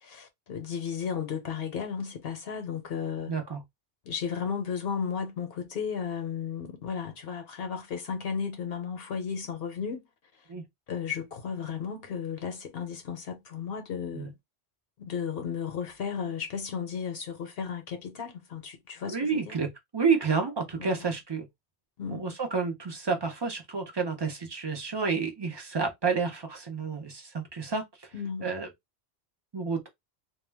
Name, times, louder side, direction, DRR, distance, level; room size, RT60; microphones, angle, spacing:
voice 1, 0.0-3.3 4.1-10.0 10.9-14.3 15.0-19.6 20.7-21.1 22.0-22.2 28.1-28.5, left 7 dB, 65° left, 0.8 m, -34 dB
voice 2, 3.3-3.6 10.5-10.6 14.1-14.3 19.1-21.5 22.1-28.1 28.4-28.7 29.5-29.9, right 5 dB, 30° right, 0.5 m, -30 dB
2.2 x 2.2 x 3.2 m
omnidirectional pair, 1.1 m